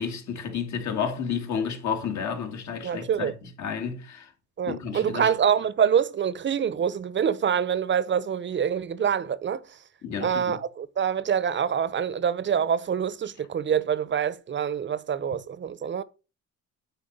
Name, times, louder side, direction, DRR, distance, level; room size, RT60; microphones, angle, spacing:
voice 1, 0.0-3.3 3.6-4.3 4.6-5.3 10.0-10.6, left 7 dB, 70° left, 2.0 m, -31 dB
voice 2, 2.8-3.3 4.6-9.6 10.2-16.0, right 8 dB, 40° right, 0.7 m, -25 dB
8.8 x 4.2 x 5.2 m
cardioid pair, 90°, 30 cm